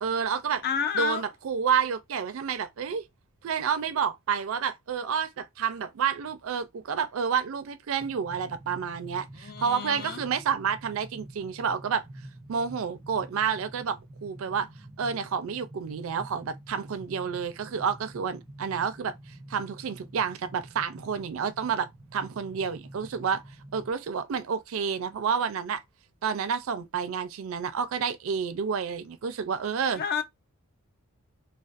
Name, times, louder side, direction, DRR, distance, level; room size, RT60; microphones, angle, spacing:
voice 1, 0.0-0.6 0.9-3.1 3.4-12.0 12.5-14.7 15.0-19.1 19.5-23.4 23.7-25.8 26.2-30.0, right 6 dB, 65° right, 0.4 m, -29 dB
voice 2, 0.6-1.2 9.4-10.2 29.9-30.2, left 7 dB, 45° left, 0.4 m, -30 dB
sound 1, 8.0-23.9, right 1 dB, 15° right, 0.5 m, -47 dB
2.4 x 2.3 x 2.4 m
head